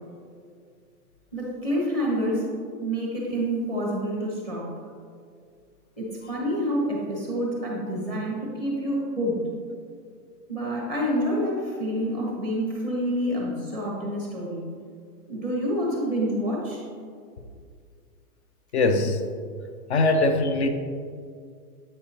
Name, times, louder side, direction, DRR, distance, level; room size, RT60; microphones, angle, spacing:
voice 1, 1.3-2.5 2.8-4.7 6.0-9.4 10.5-14.6 15.3-16.8, equal, 10° left, -3 dB, 0.9 m, -28 dB
voice 2, 18.7-19.2 19.9-20.7, left 2 dB, 45° left, 7 dB, 0.6 m, -21 dB
7.7 x 6.6 x 2.8 m, 2.2 s
hypercardioid pair, 175°, 46 cm